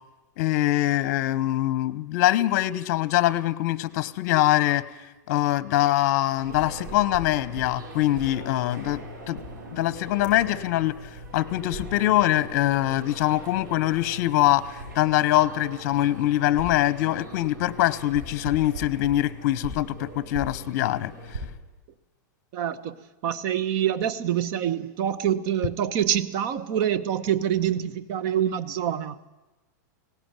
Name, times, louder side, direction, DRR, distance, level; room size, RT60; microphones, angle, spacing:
voice 1, 0.4-4.8 5.3-9.4 9.7-11.0 11.3-21.1, left 15 dB, 50° left, 1.0 m, -23 dB
sound 1, 6.4-21.4, right 1 dB, 85° right, 6.7 m, -40 dB
voice 2, 22.5-23.0 23.2-29.2, right 10 dB, 40° right, 1.0 m, -26 dB
18.0 x 17.5 x 9.1 m
supercardioid pair, 155°, 10 cm